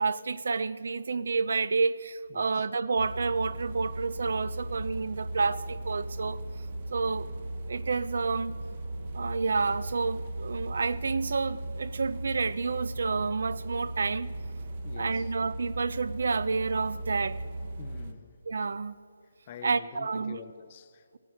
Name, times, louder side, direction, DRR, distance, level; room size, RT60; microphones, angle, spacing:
voice 1, 0.0-6.4 6.9-7.3 7.7-8.6 9.1-14.3 15.0-17.4 18.5-19.0 19.6-20.4, right 4 dB, 65° right, 0.5 m, -29 dB
voice 2, 2.3-2.7 14.8-15.3 17.8-18.4 19.5-21.2, left 8 dB, 30° left, 0.6 m, -46 dB
sound 1, 3.0-18.1, right 1 dB, 40° right, 1.0 m, -37 dB
15.5 x 9.6 x 6.3 m
hypercardioid pair, 165°, 0 cm